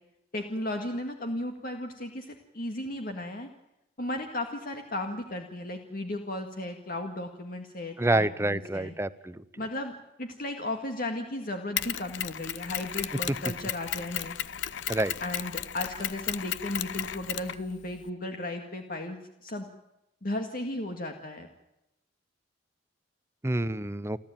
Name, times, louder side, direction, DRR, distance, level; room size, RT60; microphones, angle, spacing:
voice 1, 0.3-3.5 4.0-8.9 9.6-14.4 15.2-19.7 20.2-21.5, left 1 dB, 50° left, 4 dB, 2.0 m, -35 dB
voice 2, 8.0-9.4 14.9-15.1 23.4-24.2, right 2 dB, 15° right, 16 dB, 0.7 m, -27 dB
Mechanisms, 11.8-18.1, left 10 dB, 75° left, 0.9 m, -35 dB
29.5 x 13.0 x 9.1 m, 0.88 s
head